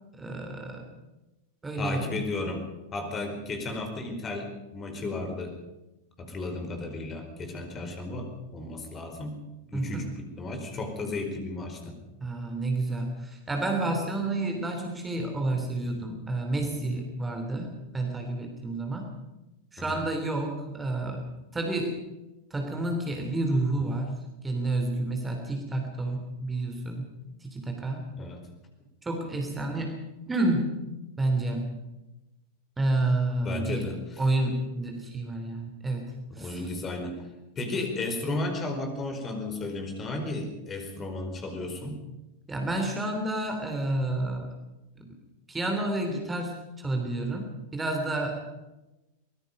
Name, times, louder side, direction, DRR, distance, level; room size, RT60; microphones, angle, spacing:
voice 1, 0.1-0.9 1.6-2.0 9.7-10.0 12.2-19.1 19.7-21.3 21.5-22.0 22.5-27.0 27.4-28.1 29.0-30.8 31.2-31.7 32.8-33.9 34.2-36.6 42.5-44.5 45.0-45.1 45.5-47.5 47.7-48.4, right 2 dB, 10° right, 3 dB, 3.3 m, -30 dB
voice 2, 1.8-2.6 2.9-5.6 6.2-9.4 9.7-12.0 19.8-20.0 28.2-28.4 33.4-34.2 36.3-37.2 37.5-42.0, left 2 dB, 25° left, 5 dB, 4.6 m, -34 dB
24.0 x 20.0 x 5.4 m, 1.0 s
figure-of-eight pair, 90°, 0 cm